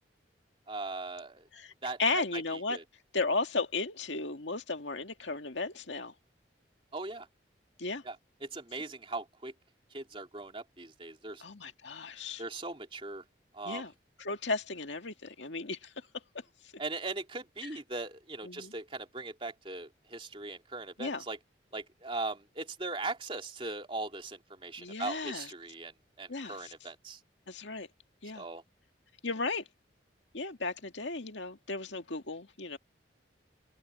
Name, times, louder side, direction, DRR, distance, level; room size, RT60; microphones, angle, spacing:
voice 1, 0.7-1.5 1.8-2.8 6.9-7.3 8.0-8.2 8.4-9.5 9.9-11.4 12.4-13.2 13.5-13.9 16.8-21.4 21.7-27.2 28.3-28.6, right 3 dB, 30° right, 3.1 m, -39 dB
voice 2, 2.0-2.8 3.1-6.1 7.8-8.0 11.4-12.4 13.6-13.9 14.2-15.9 18.4-18.7 21.0-21.2 24.8-25.5 26.3-26.7 27.5-27.9 28.2-28.4 29.2-29.6 30.3-32.8, left 3 dB, 75° left, 2.0 m, -35 dB
head